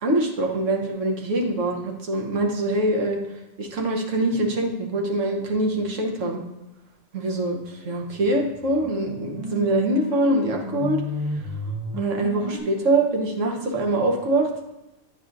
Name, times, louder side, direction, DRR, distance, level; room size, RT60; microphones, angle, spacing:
voice 1, 0.0-3.2 3.6-6.4 7.1-11.0 12.0-14.5, right 2 dB, 85° right, 1 dB, 1.3 m, -24 dB
sound 1, 8.0-12.6, left 2 dB, 15° right, 1.4 m, -33 dB
9.2 x 4.8 x 2.5 m, 0.93 s
omnidirectional pair, 1.3 m